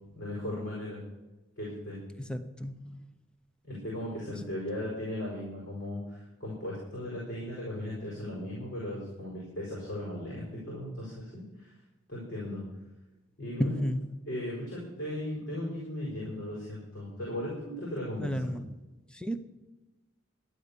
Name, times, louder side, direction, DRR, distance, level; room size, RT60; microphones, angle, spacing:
voice 1, 0.1-1.0 1.6-2.0 3.7-11.7 12.1-12.6 13.4-13.8 14.2-18.5, left 1 dB, 60° left, -5 dB, 5.0 m, -37 dB
voice 2, 2.2-3.0 13.6-14.1 18.2-18.8 19.1-19.4, equal, 5° left, 9 dB, 0.7 m, -32 dB
12.5 x 9.9 x 6.8 m, 1.1 s
head